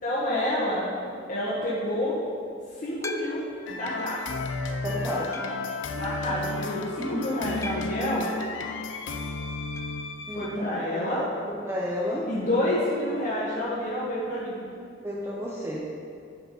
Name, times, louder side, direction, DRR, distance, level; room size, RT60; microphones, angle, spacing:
voice 1, 0.0-2.1 2.7-3.4 3.7-4.2 6.0-8.3 10.3-11.2 12.2-14.6, left 1 dB, 45° left, -10 dB, 1.6 m, -28 dB
sound 1, 3.0-3.7 4.3-4.4 5.3-5.7 7.6-8.1 9.8-10.1 10.3-10.4 10.7-10.8 12.8-12.9, left 3 dB, 15° left, 0.4 m, -40 dB
sound 2, 3.7-10.5, left 3 dB, 80° left, 0.6 m, -33 dB
voice 2, 4.8-5.5 7.0-7.3 10.3-10.6 11.6-12.3 15.0-15.8, left 1 dB, 15° right, -4 dB, 0.8 m, -31 dB
9.3 x 4.9 x 5.5 m, 2.3 s
head